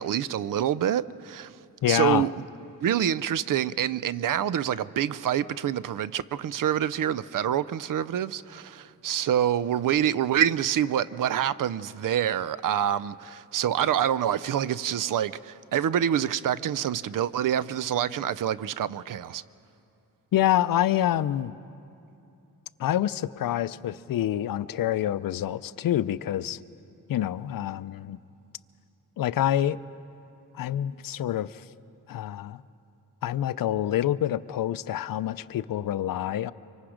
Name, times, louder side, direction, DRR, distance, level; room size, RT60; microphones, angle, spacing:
voice 1, 0.0-1.6 1.9-2.3 2.8-19.4, right 10 dB, 70° right, 0.5 m, -26 dB
voice 2, 1.8-2.3 20.3-21.5 22.8-26.6 27.1-28.2 29.2-29.8 30.5-31.6 32.1-32.6 33.2-36.5, left 12 dB, 80° left, 0.5 m, -27 dB
25.0 x 24.5 x 5.0 m
wide cardioid pair, 100°, 34 cm